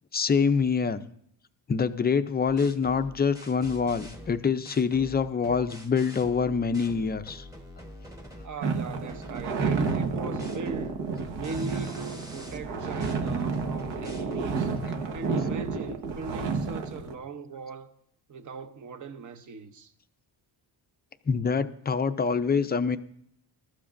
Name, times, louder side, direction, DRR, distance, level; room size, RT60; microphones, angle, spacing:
voice 1, 0.1-1.0 1.7-7.4 21.3-23.0, left 5 dB, 25° left, 0.4 m, -25 dB
sound 1, 2.5-8.6 9.1-14.8, left 1 dB, 10° right, 1.1 m, -46 dB
voice 2, 8.4-11.0 11.3-14.7 15.1-17.9 18.3-19.9, right 4 dB, 45° right, 0.8 m, -40 dB
sound 2, 8.6-17.1, right 4 dB, 75° right, 1.4 m, -30 dB
22.0 x 13.0 x 2.6 m
wide cardioid pair, 175°, 44 cm